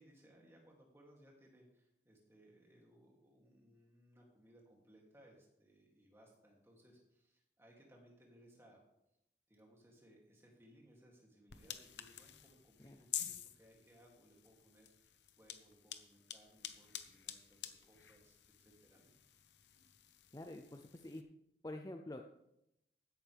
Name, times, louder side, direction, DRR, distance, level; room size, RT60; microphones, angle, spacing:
voice 1, 0.0-8.8 9.5-19.1, equal, 15° right, -2 dB, 2.8 m, -65 dB
sound 1, 11.5-21.2, left 10 dB, 80° left, 1.0 m, -50 dB
voice 2, 20.3-21.2 21.6-22.2, left 1 dB, 20° left, 5 dB, 0.5 m, -47 dB
15.5 x 11.5 x 3.5 m, 0.84 s
head